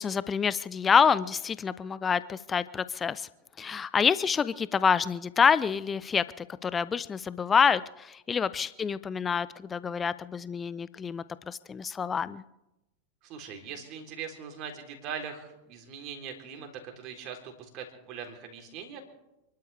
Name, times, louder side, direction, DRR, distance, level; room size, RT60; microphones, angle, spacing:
voice 1, 0.0-3.3 3.6-12.4, left 6 dB, 20° left, 17 dB, 0.5 m, -27 dB
voice 2, 13.2-19.0, right 7 dB, 40° right, 3 dB, 3.6 m, -41 dB
28.5 x 12.5 x 3.5 m, 0.93 s
figure-of-eight pair, 90°, 0 cm